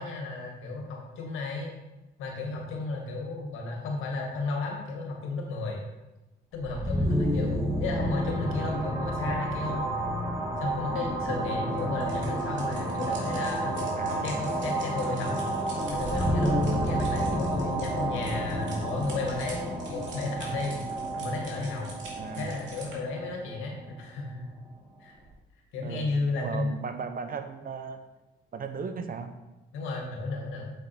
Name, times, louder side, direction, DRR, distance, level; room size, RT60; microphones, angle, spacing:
voice 1, 0.0-1.7 2.2-5.8 6.5-9.9 10.6-13.8 14.2-15.4 15.9-20.8 21.2-21.9 22.4-24.5 25.0-25.2 25.7-26.7 29.7-30.7, left 3 dB, 90° left, 0 dB, 1.9 m, -33 dB
sound 1, 6.5-24.2, right 1 dB, 15° right, 1.9 m, -30 dB
sound 2, 11.7-23.0, right 2 dB, 70° right, 2.5 m, -47 dB
voice 2, 14.0-14.4 22.1-22.5 25.8-28.0 28.5-29.3, right 5 dB, 45° right, 8 dB, 0.8 m, -36 dB
7.6 x 4.9 x 4.5 m, 1.0 s
cardioid pair, 90°, 20 cm